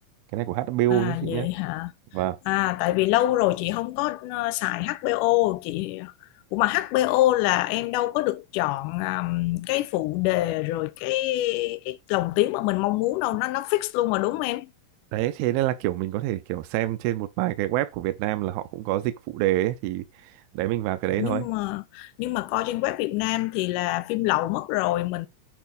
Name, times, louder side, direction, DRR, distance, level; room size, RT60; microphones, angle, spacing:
voice 1, 0.3-1.5 2.1-2.4 15.1-21.5, right 15 dB, 85° right, 2.5 m, -26 dB
voice 2, 0.9-1.9 2.5-6.1 6.5-14.7 21.2-25.3, left 17 dB, 85° left, 1.9 m, -25 dB
8.8 x 2.9 x 5.2 m
omnidirectional pair, 4.3 m